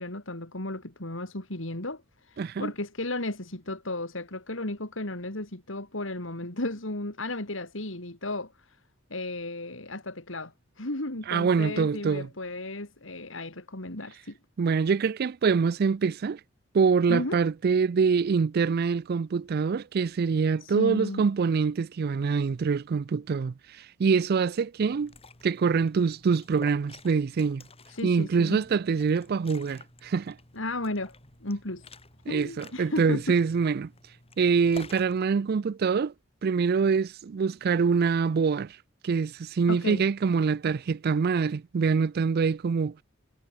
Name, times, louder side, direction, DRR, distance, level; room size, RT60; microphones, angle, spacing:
voice 1, 0.0-8.8 9.1-14.4 17.1-17.4 20.6-21.2 27.9-28.6 30.5-31.1 31.4-31.8 32.3-33.2 39.7-40.0, left 2 dB, 75° left, 3.5 m, -34 dB
voice 2, 2.4-2.7 11.3-12.3 14.6-16.4 16.7-25.1 25.4-27.6 28.0-30.4 32.3-33.9 34.4-36.1 36.4-38.8 39.0-42.9, right 5 dB, 50° right, 0.4 m, -25 dB
Liquid, 24.9-35.2, left 3 dB, 30° left, 7.3 m, -51 dB
head